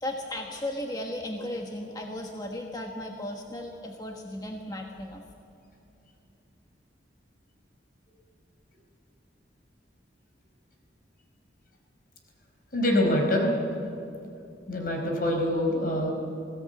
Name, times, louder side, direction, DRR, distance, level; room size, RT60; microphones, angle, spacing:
voice 1, 0.0-5.2, left 1 dB, 20° left, 2 dB, 1.4 m, -35 dB
voice 2, 12.7-13.5 14.7-16.1, left 1 dB, 50° left, 2 dB, 4.7 m, -25 dB
21.0 x 17.0 x 9.2 m, 2.7 s
head